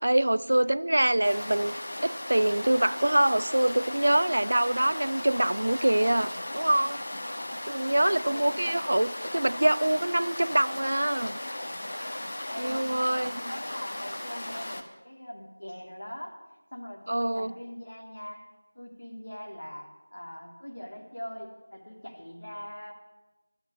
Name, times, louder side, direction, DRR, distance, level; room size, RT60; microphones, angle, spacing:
voice 1, 0.0-1.7 2.0-7.0 7.7-11.4 12.6-13.3 17.1-17.5, right 1 dB, 45° right, 18 dB, 0.4 m, -25 dB
sound 1, 1.2-14.8, left 1 dB, 35° left, 1.1 m, -36 dB
voice 2, 8.2-8.9 9.2-9.3 12.4-16.3 16.7-18.4 18.7-19.9 20.1-22.9, equal, 60° left, 0 dB, 3.1 m, -41 dB
12.5 x 8.7 x 8.9 m, 1.1 s
figure-of-eight pair, 175°, 0 cm